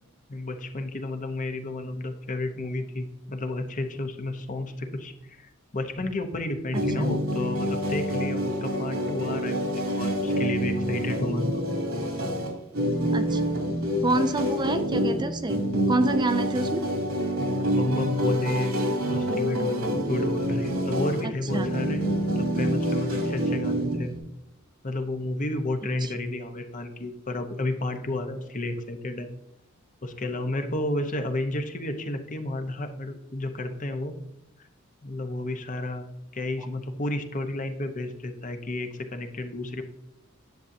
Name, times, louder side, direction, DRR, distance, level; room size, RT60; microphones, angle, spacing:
voice 1, 0.3-11.6 17.4-18.8 19.1-22.0 22.3-24.1 24.8-29.3 30.0-34.2 34.6-34.7 35.0-39.8, left 2 dB, 40° left, 6 dB, 0.9 m, -31 dB
sound 1, 6.7-24.2, equal, 85° right, 2.8 m, -27 dB
voice 2, 14.0-15.6 15.9-16.8 21.5-21.7 26.0-26.1, right 2 dB, 20° right, 8 dB, 0.5 m, -26 dB
10.5 x 7.1 x 2.7 m, 0.83 s
head